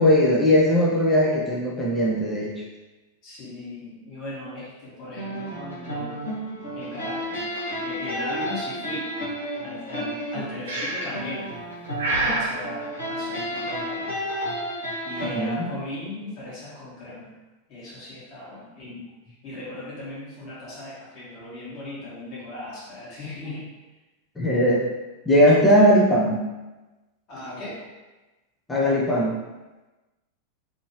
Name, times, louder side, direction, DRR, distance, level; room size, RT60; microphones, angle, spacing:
voice 1, 0.0-2.6 15.3-15.7 24.4-24.8 25.3-26.4 28.7-29.4, equal, 10° left, -5 dB, 0.6 m, -19 dB
voice 2, 3.2-6.2 6.7-7.4 7.8-9.1 9.6-11.6 12.1-14.2 15.0-17.3 17.7-19.1 19.4-23.7 25.4-25.8 27.3-27.8, left 1 dB, 40° left, -9 dB, 1.3 m, -37 dB
sound 1, 5.1-15.4, equal, 75° left, 1.2 m, -32 dB
Breathing, 10.7-11.3 12.0-12.6, right 2 dB, 65° right, 0.6 m, -26 dB
2.7 x 2.7 x 2.9 m, 1.1 s
figure-of-eight pair, 90°, 0 cm